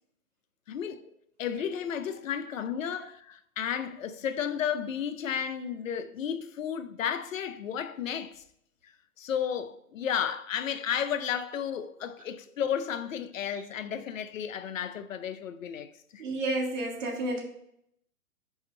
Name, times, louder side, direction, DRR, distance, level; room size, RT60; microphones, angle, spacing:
voice 1, 0.7-1.0 1.4-8.4 9.2-16.2, left 8 dB, 60° left, 0.6 m, -33 dB
voice 2, 16.2-17.4, right 2 dB, 55° right, 1.9 m, -31 dB
5.1 x 3.5 x 5.4 m
hypercardioid pair, 145°, 44 cm